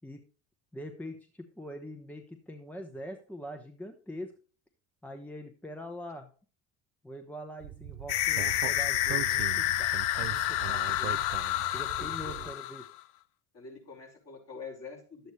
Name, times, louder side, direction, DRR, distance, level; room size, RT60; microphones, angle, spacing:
voice 1, 0.7-4.3 5.0-6.3 7.0-9.9 10.2-11.2 11.7-12.9, equal, 5° left, 5 dB, 1.0 m, -43 dB
Speech, 7.6-12.5, right 16 dB, 80° right, 0.5 m, -40 dB
sound 1, 8.1-13.0, left 15 dB, 80° left, 0.6 m, -29 dB
voice 2, 12.0-12.5 13.5-15.3, left 4 dB, 40° left, -1 dB, 5.1 m, -46 dB
11.0 x 8.0 x 3.2 m, 0.39 s
supercardioid pair, 75°, 38 cm